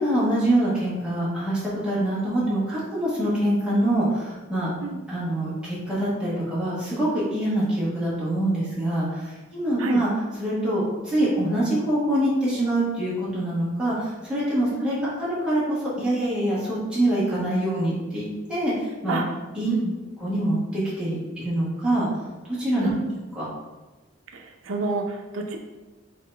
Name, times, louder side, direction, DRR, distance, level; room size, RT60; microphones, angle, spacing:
voice 1, 0.0-4.7 5.1-10.1 10.4-19.2 19.6-19.7 20.2-22.1 22.5-22.9 23.4-23.5, right 1 dB, 5° right, -9 dB, 1.5 m, -25 dB
voice 2, 22.8-23.1 24.3-25.6, right 2 dB, 85° right, 2 dB, 0.6 m, -29 dB
4.0 x 3.7 x 3.4 m, 1.2 s
head